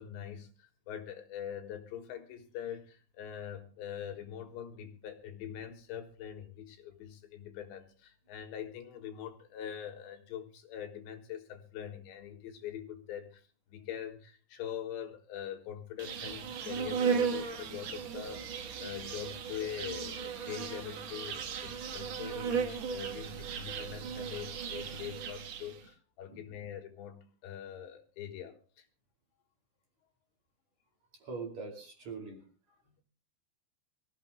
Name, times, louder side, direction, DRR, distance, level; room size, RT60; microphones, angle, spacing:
voice 1, 0.0-28.9 32.9-33.0, left 9 dB, 75° left, 3.7 m, -43 dB
Insect, 16.0-25.8, right 6 dB, 75° right, 1.5 m, -36 dB
voice 2, 31.2-32.4, right 4 dB, 45° right, 3.3 m, -42 dB
24.5 x 15.0 x 2.2 m
omnidirectional pair, 5.3 m